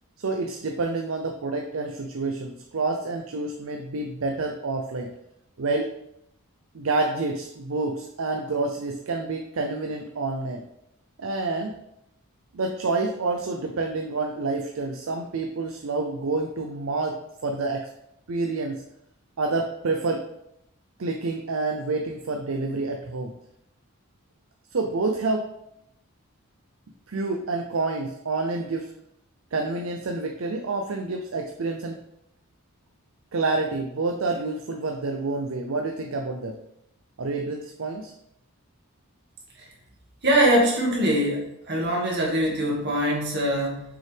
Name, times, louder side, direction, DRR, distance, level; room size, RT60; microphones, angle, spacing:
voice 1, 0.2-5.1 5.6-5.9 6.7-10.6 11.2-11.7 12.5-17.9 18.3-18.8 19.4-20.3 21.0-23.3 24.7-25.5 27.1-28.9 29.5-32.0 33.3-36.6 37.2-38.1, right 3 dB, 65° right, 3 dB, 0.6 m, -28 dB
voice 2, 40.2-43.8, right 1 dB, 50° right, -3 dB, 2.1 m, -23 dB
6.3 x 5.5 x 3.5 m, 0.80 s
head